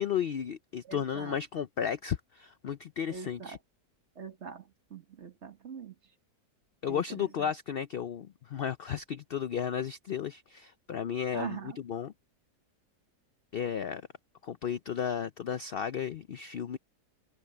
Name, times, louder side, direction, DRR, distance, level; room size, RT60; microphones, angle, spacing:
voice 1, 0.0-3.6 6.8-12.1 13.5-14.0 14.4-16.8, left 8 dB, 75° left, 0.5 m, -34 dB
voice 2, 0.8-1.4 3.1-3.6 4.2-4.6 4.9-5.9 6.9-7.5 11.3-11.8, right 6 dB, 45° right, 1.5 m, -42 dB
omnidirectional pair, 1.7 m